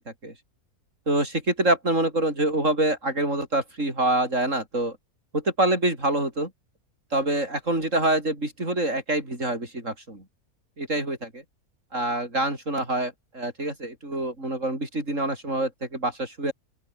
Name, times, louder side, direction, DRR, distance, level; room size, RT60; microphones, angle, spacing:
voice 1, 1.1-5.0 5.3-6.5 7.1-10.2 10.8-11.4 11.9-16.5, right 1 dB, 50° right, 8.5 m, -26 dB
open air
omnidirectional pair, 1.6 m